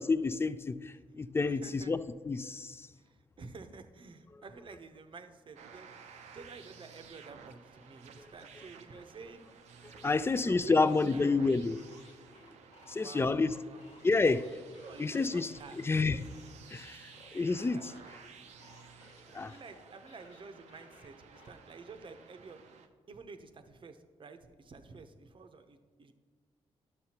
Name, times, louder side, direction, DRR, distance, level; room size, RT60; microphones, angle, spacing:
voice 1, 0.0-2.0 2.3-2.9 8.2-8.3 9.9-11.8 12.9-13.5 14.0-14.4 15.0-16.2 16.7-17.9 19.3-19.5, left 3 dB, 20° left, 14 dB, 0.3 m, -29 dB
voice 2, 1.6-1.9 3.0-5.9 6.3-9.4 10.0-11.2 13.0-13.8 14.8-16.2 16.9-17.9 19.3-22.7 23.1-26.1, right 4 dB, 45° right, 8 dB, 0.7 m, -50 dB
sound 1, 5.6-22.9, right 6 dB, 85° right, 0.6 m, -55 dB
sound 2, 11.7-18.2 18.6-21.5, left 3 dB, 85° left, 1.1 m, -59 dB
11.0 x 6.7 x 2.9 m, 1.5 s
cardioid pair, 75°, 12 cm